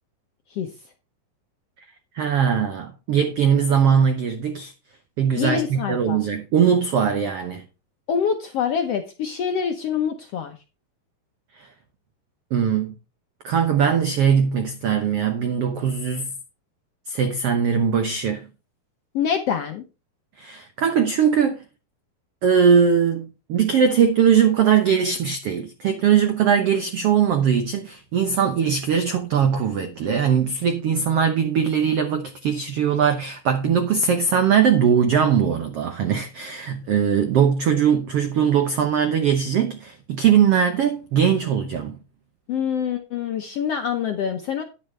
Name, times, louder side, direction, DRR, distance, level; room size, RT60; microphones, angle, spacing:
voice 1, 2.1-4.7 5.2-7.6 11.5-11.7 12.5-13.0 13.4-16.3 17.1-18.5 20.4-21.6 22.4-42.0, right 7 dB, 80° right, 1.3 m, -20 dB
voice 2, 5.4-6.2 8.1-10.6 19.1-19.8 42.5-44.6, left 7 dB, 85° left, 1.3 m, -25 dB
10.5 x 10.0 x 3.2 m
omnidirectional pair, 4.1 m